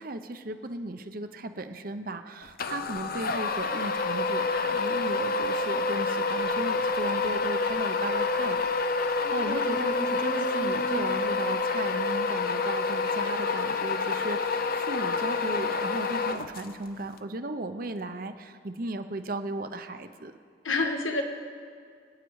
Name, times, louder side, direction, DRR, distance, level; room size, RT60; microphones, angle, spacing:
voice 1, 0.0-8.6 9.0-20.3, right 2 dB, 45° right, 8 dB, 0.7 m, -36 dB
sound 1, 2.6-16.9, left 3 dB, 45° left, 0.6 m, -28 dB
voice 2, 9.2-11.2 20.6-21.2, left 2 dB, 80° left, 3 dB, 1.6 m, -32 dB
25.5 x 9.2 x 4.8 m, 2.1 s
head